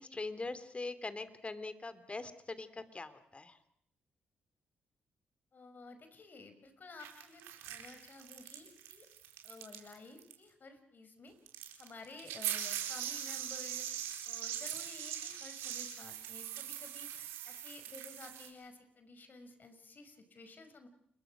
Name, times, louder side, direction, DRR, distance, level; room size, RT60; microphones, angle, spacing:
voice 1, 0.0-3.6, left 3 dB, 30° left, 12 dB, 3.0 m, -42 dB
voice 2, 5.5-9.1 9.4-11.4 11.8-14.0 14.3-20.9, left 3 dB, 50° left, 9 dB, 5.4 m, -53 dB
sound 1, 7.0-9.9 10.2-10.3 11.5-18.5, right 10 dB, 90° right, 4.4 m, -41 dB
29.0 x 22.0 x 6.3 m, 0.71 s
supercardioid pair, 50°, 4 cm